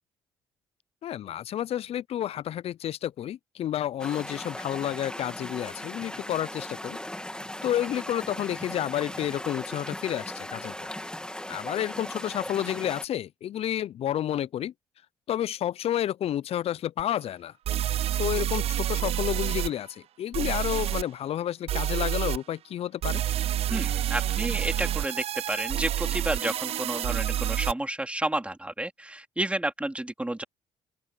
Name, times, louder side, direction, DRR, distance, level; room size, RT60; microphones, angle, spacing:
voice 1, 1.0-7.0 7.6-10.8 11.5-14.7 15.3-17.5 18.2-23.2, left 11 dB, 55° left, 0.7 m, -30 dB
sound 1, 4.0-13.0, left 1 dB, 5° left, 2.8 m, -38 dB
sound 2, 17.0-17.1 17.6-19.7 20.3-21.0 21.7-22.4 23.0-27.7, right 12 dB, 55° right, 0.7 m, -28 dB
voice 2, 23.7-30.4, right 1 dB, 10° right, 4.1 m, -31 dB
open air
hypercardioid pair, 50°, 12 cm